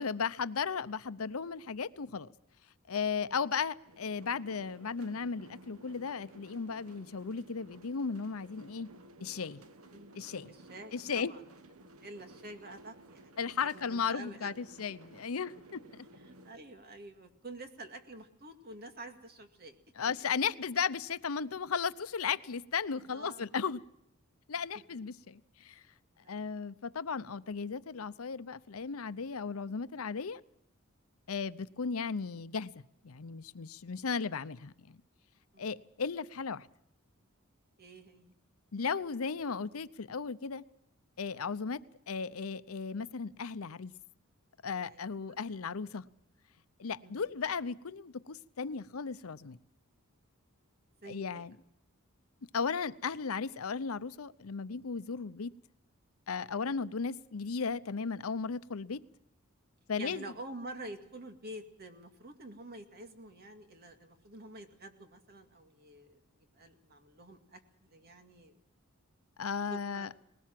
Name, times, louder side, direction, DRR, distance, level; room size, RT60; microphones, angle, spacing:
voice 1, 0.0-2.3 2.9-8.9 9.2-9.6 10.2-10.5 10.9-11.3 13.4-16.1 20.0-23.8 24.5-25.8 26.3-30.4 31.3-35.0 35.6-36.7 38.7-40.6 41.2-41.8 42.1-43.9 44.6-46.0 46.8-49.6 51.1-51.5 52.5-55.5 56.3-59.0 59.9-60.2 69.4-70.1, left 5 dB, 90° left, 0.7 m, -35 dB
sound 1, 3.9-16.6, right 1 dB, 85° right, 1.2 m, -56 dB
voice 2, 10.5-11.4 12.0-14.6 16.2-19.8 23.1-23.4 26.2-26.4 34.1-34.2 35.5-35.7 37.8-38.3 44.9-45.4 47.0-47.2 51.0-51.4 56.6-56.8 60.0-68.5 69.7-70.1, right 1 dB, 50° right, 2.2 m, -48 dB
20.0 x 18.5 x 7.6 m
head